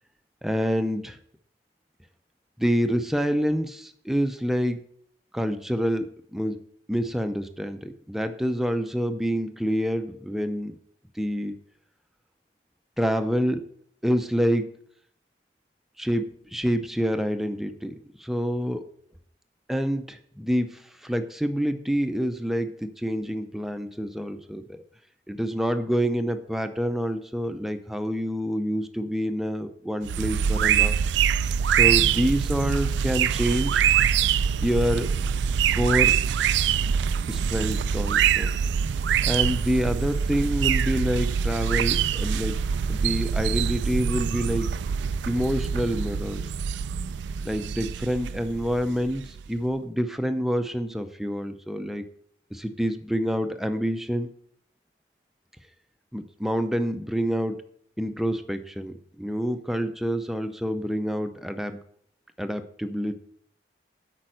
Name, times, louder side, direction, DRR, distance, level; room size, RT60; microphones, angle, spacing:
voice 1, 0.4-1.2 2.6-4.8 5.3-6.6 6.9-10.8 11.1-11.6 13.0-13.7 14.0-14.7 16.0-18.8 19.7-24.8 25.3-31.0 31.7-33.9 34.6-35.1 35.7-36.2 37.3-38.5 39.3-42.6 42.9-44.8 45.3-46.4 47.4-52.1 52.5-54.3 56.1-57.6 58.0-61.8 62.4-63.2, equal, ahead, 7 dB, 0.5 m, -27 dB
sound 1, 30.0-49.5, right 8 dB, 70° right, 0.3 m, -24 dB
8.5 x 5.3 x 7.7 m, 0.64 s
head